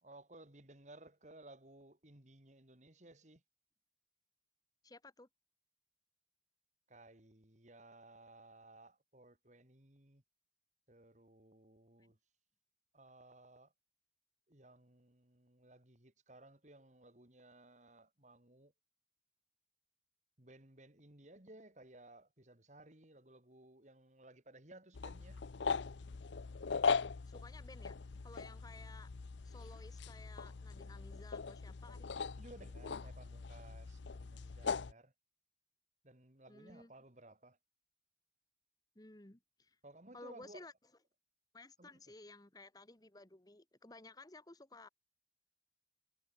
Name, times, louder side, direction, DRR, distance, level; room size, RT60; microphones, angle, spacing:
voice 1, 0.0-3.4 6.9-10.2 10.9-12.2 12.9-13.7 14.5-18.7 20.4-25.4 32.4-35.1 36.0-37.6 39.8-40.6 41.8-42.0, right 2 dB, 40° right, 2.7 m, -59 dB
voice 2, 4.8-5.3 27.3-28.0 28.2-29.1 29.4-32.2 36.5-36.9 38.9-39.8 40.1-40.7 41.5-44.9, left 2 dB, 20° left, 1.2 m, -56 dB
sound 1, 24.9-34.9, left 5 dB, 90° left, 0.6 m, -40 dB
head